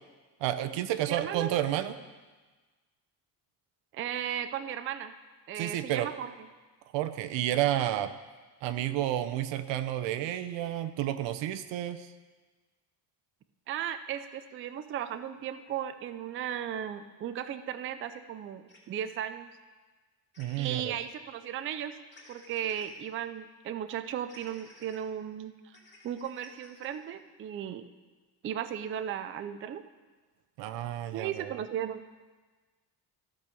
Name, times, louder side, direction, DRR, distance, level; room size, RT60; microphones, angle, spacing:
voice 1, 0.4-2.0 5.6-6.1 6.9-8.1 8.6-12.1 20.4-21.0 30.6-31.6, right 12 dB, 85° right, 11 dB, 0.8 m, -31 dB
voice 2, 1.1-1.5 3.9-5.1 5.5-6.3 13.7-19.5 20.6-22.0 22.3-25.7 26.0-27.9 28.4-29.8 31.1-32.0, right 9 dB, 30° right, 10 dB, 0.4 m, -36 dB
sound 1, 18.7-18.8 20.3-20.8 22.1-22.9 24.3-25.0 25.7-27.0, left 2 dB, 25° left, 2.3 m, -55 dB
14.0 x 5.4 x 6.8 m, 1.3 s
cardioid pair, 170°, 43 cm